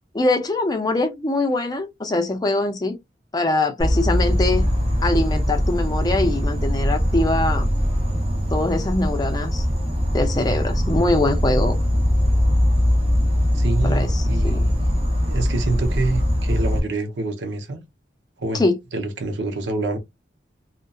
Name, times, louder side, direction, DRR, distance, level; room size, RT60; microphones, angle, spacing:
voice 1, 0.1-2.9 3.3-4.6 5.0-7.7 8.5-9.6 10.1-11.8 13.8-14.6 18.5-18.7, left 2 dB, 20° left, 0.5 m, -23 dB
Insect, 3.8-16.8, equal, 35° right, 0.6 m, -21 dB
voice 2, 13.5-14.8 15.2-17.8 18.4-18.6 18.9-20.0, right 2 dB, 80° right, 0.7 m, -26 dB
2.7 x 2.1 x 2.3 m
head